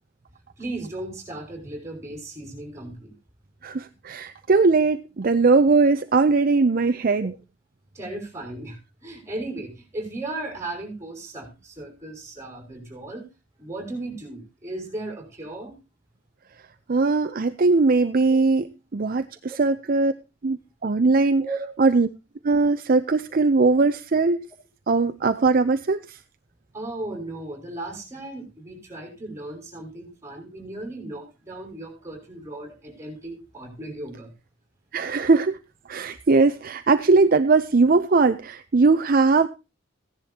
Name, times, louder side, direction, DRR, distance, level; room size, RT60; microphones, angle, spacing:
voice 1, 0.6-3.1 7.9-13.3 13.6-15.8 18.3-18.4 21.4-21.7 26.7-34.3, right 2 dB, 15° right, 2 dB, 5.7 m, -36 dB
voice 2, 3.6-7.3 16.9-18.7 18.9-20.1 20.4-21.4 21.8-22.1 22.4-24.4 24.9-26.2 34.9-35.6 35.9-39.5, right 3 dB, 45° right, 9 dB, 0.5 m, -20 dB
16.5 x 10.5 x 2.8 m, 0.28 s
head